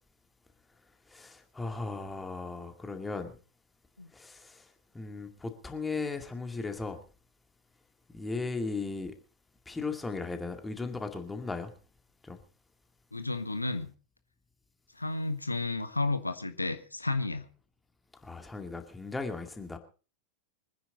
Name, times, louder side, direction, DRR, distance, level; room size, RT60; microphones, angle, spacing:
voice 1, 1.1-3.3 4.1-4.7 4.9-7.0 8.1-9.1 9.7-11.7 12.2-12.4 18.2-19.8, left 3 dB, 10° left, 6 dB, 2.2 m, -36 dB
voice 2, 13.1-13.9 15.0-17.5, left 2 dB, 85° left, 10 dB, 1.2 m, -32 dB
24.5 x 10.5 x 4.0 m, 0.36 s
figure-of-eight pair, 90°, 0 cm